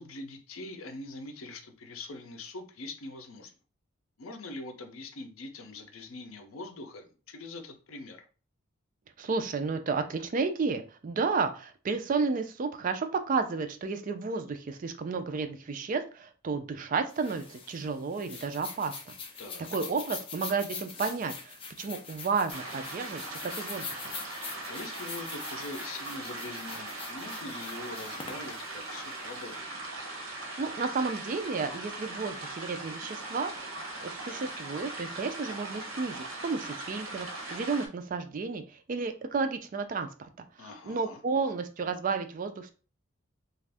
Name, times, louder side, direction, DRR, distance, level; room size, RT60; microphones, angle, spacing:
voice 1, 0.0-3.5 4.2-8.2 19.4-19.7 24.3-29.6 40.6-41.2, left 2 dB, 80° left, 6 dB, 0.6 m, -43 dB
voice 2, 9.2-19.1 19.7-24.0 30.3-33.7 34.0-40.3 40.6-42.7, right 4 dB, 40° right, 8 dB, 0.3 m, -32 dB
sound 1, 17.1-29.5, left 5 dB, 25° left, 0.5 m, -43 dB
sound 2, 22.5-37.9, right 2 dB, 80° right, 0.8 m, -40 dB
2.5 x 2.3 x 3.4 m, 0.37 s
head